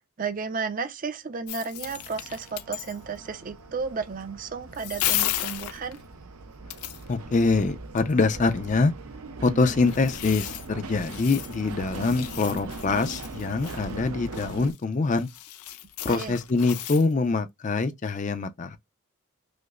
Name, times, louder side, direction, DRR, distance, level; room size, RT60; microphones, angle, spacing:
voice 1, 0.2-6.0 16.1-16.4, right 5 dB, 35° right, 0.4 m, -33 dB
sound 1, 1.5-3.0 4.7-6.0 6.7-7.1 9.7-17.2, left 13 dB, 90° left, 0.5 m, -34 dB
sound 2, 1.8-14.7, right 3 dB, 80° right, 0.6 m, -41 dB
voice 2, 7.1-8.9 9.4-15.3 16.0-18.8, left 3 dB, 35° left, 0.4 m, -24 dB
5.0 x 2.0 x 2.3 m
head